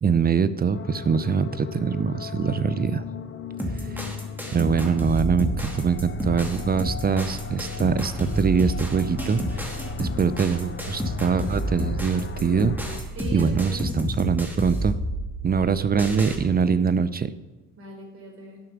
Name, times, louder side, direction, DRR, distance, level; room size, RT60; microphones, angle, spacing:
voice 1, 0.0-3.0 4.5-13.0 13.3-15.0 15.4-17.3, right 6 dB, 30° right, 14 dB, 0.6 m, -23 dB
sound 1, 0.7-13.0, left 7 dB, 40° left, 0.7 m, -37 dB
sound 2, 3.6-16.4, equal, 5° right, 2.1 m, -30 dB
voice 2, 3.9-4.4 13.1-13.9 15.5-15.7 17.8-18.6, equal, 45° right, 2 dB, 3.9 m, -41 dB
11.5 x 6.2 x 6.0 m, 1.2 s
cardioid pair, 90°, 30 cm